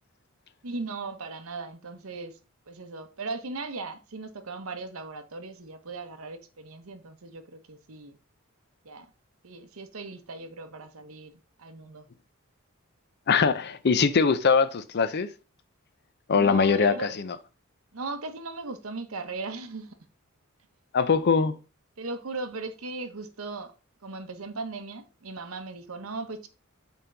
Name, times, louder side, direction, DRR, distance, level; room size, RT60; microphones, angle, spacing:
voice 1, 0.6-2.4 2.7-8.2 8.8-9.1 9.4-11.3 11.6-12.1 16.3-17.1 17.9-20.0 22.0-23.7 24.0-26.5, right 3 dB, 75° right, 0.9 m, -38 dB
voice 2, 13.3-15.3 16.3-17.4 20.9-21.6, left 5 dB, 50° left, 0.5 m, -22 dB
5.5 x 4.4 x 3.8 m
head